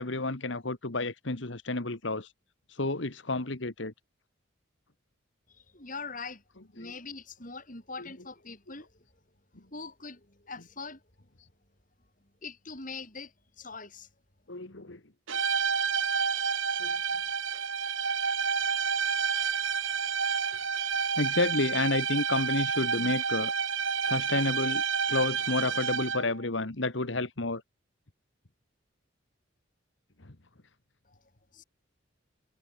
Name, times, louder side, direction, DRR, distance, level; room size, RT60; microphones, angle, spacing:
voice 1, 0.0-2.3 2.7-3.9 8.0-8.1 10.6-10.7 14.5-15.0 16.8-17.0 21.2-23.5 24.0-24.8 25.1-27.6, left 2 dB, 70° left, 1.9 m, -30 dB
voice 2, 5.5-6.4 6.7-9.1 9.7-11.0 12.4-14.1 31.0-31.2 31.5-31.6, left 4 dB, 40° left, 6.2 m, -42 dB
sound 1, 15.3-26.4, right 6 dB, 85° right, 5.0 m, -29 dB
head